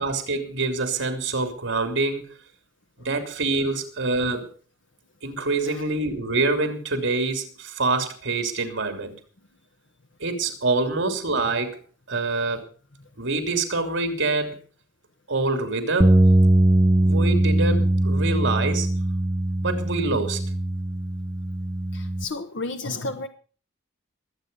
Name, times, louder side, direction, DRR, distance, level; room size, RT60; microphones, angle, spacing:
voice 1, 0.0-2.3 3.0-4.5 5.2-9.1 10.2-11.8 12.1-12.6 13.2-14.6 15.3-16.2 17.0-18.9 19.6-20.4, right 3 dB, 85° right, 6 dB, 3.1 m, -26 dB
sound 1, 16.0-22.2, right 1 dB, 20° right, 0.6 m, -21 dB
voice 2, 21.9-23.3, left 3 dB, 75° left, 5 dB, 1.3 m, -32 dB
23.0 x 8.6 x 5.4 m, 0.40 s
head